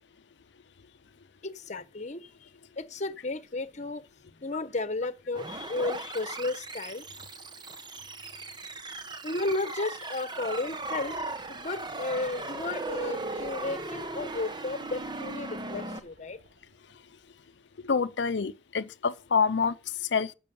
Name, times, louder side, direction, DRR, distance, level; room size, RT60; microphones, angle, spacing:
voice 1, 1.4-2.5 2.8-4.0 4.4-7.0 9.2-11.2 11.5-16.4, left 2 dB, 40° left, 1.1 m, -33 dB
sound 1, 5.3-16.0, right 2 dB, 25° right, 1.1 m, -38 dB
sound 2, 10.3-17.3 17.7-17.8, right 1 dB, 85° right, 3.7 m, -52 dB
voice 2, 17.8-20.3, left 5 dB, 75° left, 0.6 m, -27 dB
12.0 x 7.8 x 5.4 m
head